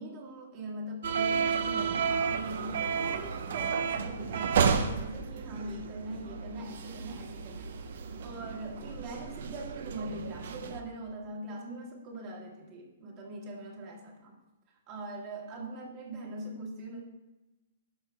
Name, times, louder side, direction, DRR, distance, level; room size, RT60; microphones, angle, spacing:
voice 1, 0.0-14.4 14.9-17.0, right 1 dB, 35° right, -1 dB, 1.8 m, -41 dB
sound 1, 1.0-10.8, right 6 dB, 65° right, 0.6 m, -32 dB
11.5 x 6.6 x 2.4 m, 1.1 s
hypercardioid pair, 130°, 0 cm